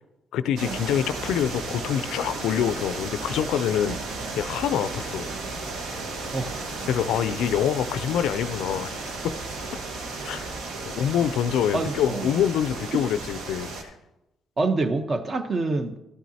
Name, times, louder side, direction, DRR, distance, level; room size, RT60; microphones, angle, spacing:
voice 1, 0.3-4.0 4.4-5.3 6.9-8.9 9.2-9.3 10.2-10.4 10.9-13.9, left 9 dB, 85° left, 13 dB, 0.3 m, -25 dB
sound 1, 0.6-13.8, right 3 dB, 85° right, 1.2 m, -34 dB
voice 2, 3.9-4.4 6.3-6.6 11.7-12.4 14.6-16.0, right 3 dB, 40° right, 9 dB, 0.8 m, -27 dB
13.0 x 9.2 x 2.8 m, 0.94 s
cardioid pair, 90°, 0 cm